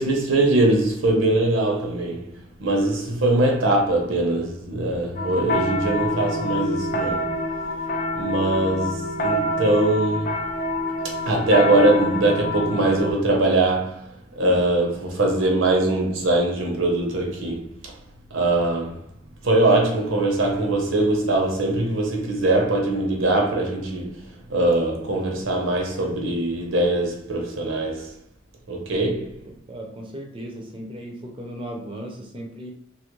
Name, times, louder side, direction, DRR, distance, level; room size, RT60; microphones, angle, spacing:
voice 1, 0.0-7.4 8.1-10.4 11.0-17.9 18.3-19.0 19.4-28.1 28.7-29.4, right 2 dB, 90° right, 0.8 m, -22 dB
sound 1, 5.2-13.1, left 1 dB, 45° left, 0.4 m, -27 dB
voice 2, 29.7-32.7, right 1 dB, 25° right, 0.4 m, -36 dB
2.9 x 2.4 x 3.0 m
head